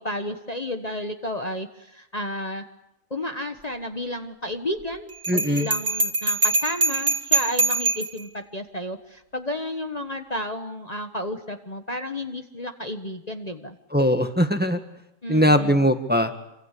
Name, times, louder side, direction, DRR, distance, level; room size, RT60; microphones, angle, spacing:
voice 1, 0.0-2.6 3.1-13.8 15.2-15.9, left 1 dB, 30° left, 5 dB, 1.4 m, -32 dB
Bell, 5.2-8.2, right 2 dB, 65° right, 3.0 m, -23 dB
voice 2, 5.3-5.7 13.9-14.8 15.3-16.3, equal, 5° right, 7 dB, 1.6 m, -20 dB
27.0 x 25.5 x 8.4 m, 0.87 s
omnidirectional pair, 1.4 m